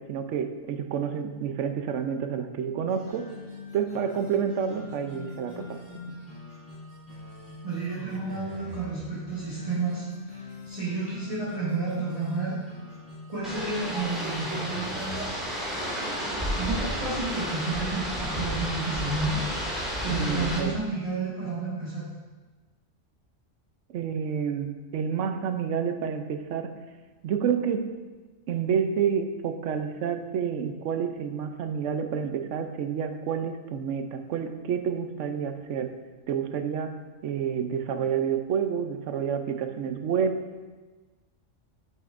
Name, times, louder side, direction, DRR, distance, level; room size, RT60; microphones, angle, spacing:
voice 1, 0.0-3.3 3.7-5.8 6.1-6.2 20.1-20.7 23.9-26.7 27.2-27.9 28.5-35.9 36.3-36.9 37.2-40.4, right 7 dB, 80° right, 7 dB, 1.0 m, -29 dB
sound 1, 2.9-15.7, left 3 dB, 50° left, 2.2 m, -43 dB
voice 2, 7.6-12.6 13.3-15.4 16.6-19.4 20.0-22.0, right 3 dB, 30° right, -11 dB, 1.8 m, -31 dB
sound 2, 13.4-20.6, equal, ahead, 2.1 m, -31 dB
8.6 x 6.8 x 2.5 m, 1.3 s
omnidirectional pair, 1.2 m